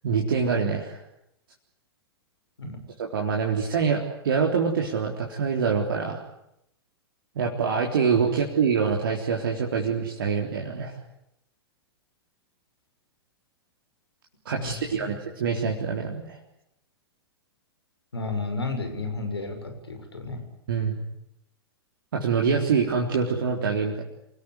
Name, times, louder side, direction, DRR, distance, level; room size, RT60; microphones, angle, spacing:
voice 1, 0.0-1.0 3.0-6.2 7.4-11.0 14.5-16.4 20.7-21.0 22.1-24.0, right 6 dB, 60° right, 0 dB, 3.8 m, -25 dB
voice 2, 14.5-15.2 18.1-20.4, left 3 dB, 75° left, 6 dB, 6.7 m, -32 dB
28.0 x 18.5 x 9.7 m, 0.80 s
figure-of-eight pair, 100°, 13 cm